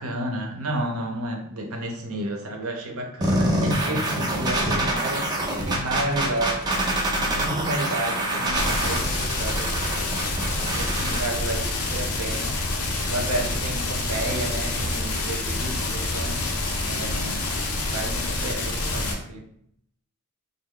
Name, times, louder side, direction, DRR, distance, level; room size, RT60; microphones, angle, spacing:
voice 1, 0.0-5.3 5.6-10.1 10.7-12.6 13.0-16.5 16.8-17.5 17.8-19.5, right 1 dB, 70° right, 2 dB, 0.7 m, -31 dB
sound 1, 3.2-11.2, right 1 dB, 20° right, 0.5 m, -25 dB
sound 2, 8.5-19.1, left 2 dB, 80° left, 0.7 m, -27 dB
3.2 x 2.0 x 3.6 m, 0.68 s
head